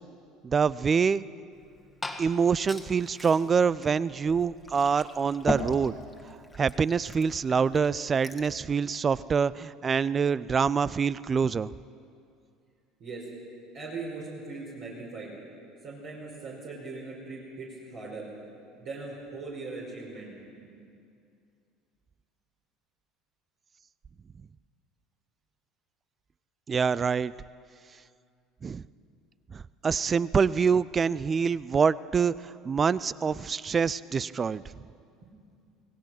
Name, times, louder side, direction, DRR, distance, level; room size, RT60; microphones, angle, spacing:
voice 1, 0.4-1.2 2.2-5.9 6.6-11.7 26.7-27.3 28.6-28.8 29.5-34.6, right 6 dB, 30° right, 20 dB, 0.5 m, -25 dB
Liquid, 1.5-8.6, left 2 dB, 10° left, 1.7 m, -39 dB
voice 2, 13.0-13.3 13.7-15.3 15.8-18.3 18.7-20.3 20.6-20.8 35.1-35.3, right 3 dB, 50° right, -5 dB, 5.2 m, -40 dB
27.5 x 18.0 x 5.8 m, 2.4 s
figure-of-eight pair, 65°, 0 cm